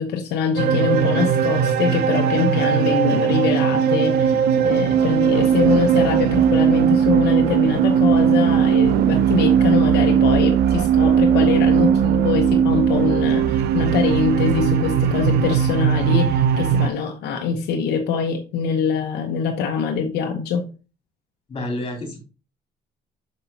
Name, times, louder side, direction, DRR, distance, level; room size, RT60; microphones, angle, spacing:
voice 1, 0.0-4.4 4.6-20.6, left 6 dB, 75° left, 1.0 m, -23 dB
sound 1, 0.6-16.9, right 8 dB, 75° right, 0.6 m, -18 dB
voice 2, 21.5-22.2, left 1 dB, 30° left, 3.6 m, -29 dB
6.4 x 5.5 x 2.8 m
cardioid pair, 110°, 17 cm